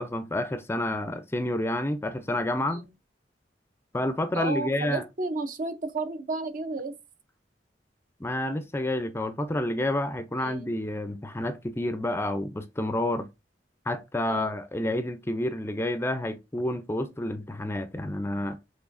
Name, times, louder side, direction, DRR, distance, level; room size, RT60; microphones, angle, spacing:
voice 1, 0.0-2.8 3.9-5.0 8.2-13.3 13.9-18.6, left 1 dB, 15° left, 0.4 m, -29 dB
voice 2, 4.3-6.9 10.4-10.7 14.3-14.6, right 3 dB, 50° right, 0.6 m, -32 dB
6.1 x 3.2 x 2.5 m
head